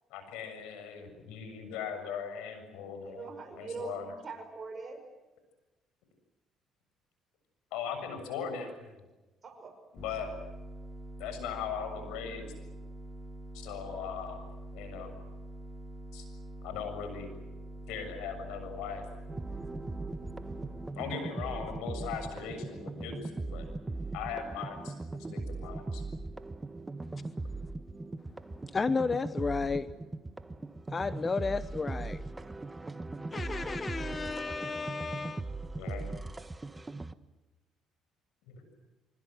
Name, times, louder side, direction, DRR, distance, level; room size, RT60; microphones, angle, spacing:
voice 1, 0.1-4.1 7.7-8.9 9.9-10.3 11.2-12.5 13.5-14.4 14.7-15.2 16.1-16.3 16.6-17.3 17.9-19.0 21.0-23.7 24.1-24.9 25.3-26.0 35.7-36.1 38.5-38.6, left 7 dB, 90° left, 8 dB, 7.1 m, -39 dB
voice 2, 3.0-5.0 9.4-9.7, right 4 dB, 40° right, 6 dB, 5.9 m, -42 dB
sound 1, 10.0-20.9, right 2 dB, 15° left, 2.7 m, -45 dB
sound 2, 19.3-37.1, right 2 dB, 20° right, 1.3 m, -39 dB
voice 3, 28.7-29.9 30.9-32.2 33.3-35.5, left 4 dB, 30° left, 13 dB, 0.9 m, -33 dB
26.0 x 24.5 x 7.7 m, 1.1 s
cardioid pair, 85°, 0 cm